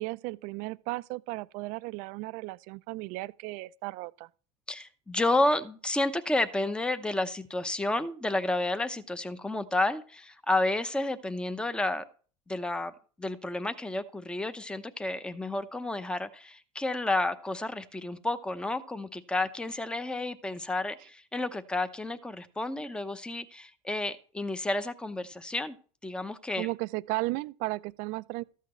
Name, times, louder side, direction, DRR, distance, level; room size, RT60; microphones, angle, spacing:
voice 1, 0.0-4.3 26.6-28.4, right 22 dB, 60° right, 0.5 m, -35 dB
voice 2, 4.7-12.0 12.5-12.9 13.2-25.8 26.0-26.7, left 2 dB, 5° left, 0.8 m, -31 dB
13.0 x 8.3 x 3.1 m
supercardioid pair, 105°, 15 cm